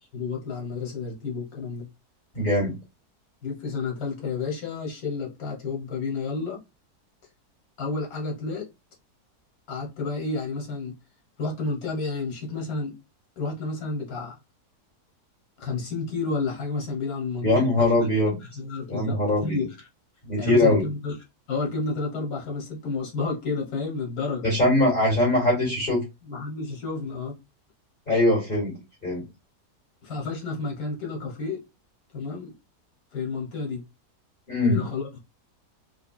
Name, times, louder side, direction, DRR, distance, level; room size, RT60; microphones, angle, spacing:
voice 1, 0.1-1.9 3.4-6.6 7.8-8.7 9.7-10.9 11.4-12.9 13.4-14.4 15.6-18.1 18.5-19.9 20.4-21.1 21.5-24.5 26.2-27.4 30.0-31.6 32.1-32.5 33.1-33.8 34.6-35.2, left 4 dB, 65° left, 1.6 m, -31 dB
voice 2, 2.3-2.7 17.4-18.4 18.9-19.6 20.2-20.9 24.4-26.0 28.1-28.8 29.0-29.2 34.5-34.8, left 1 dB, 35° left, 2.4 m, -22 dB
4.8 x 2.6 x 2.3 m
omnidirectional pair, 1.7 m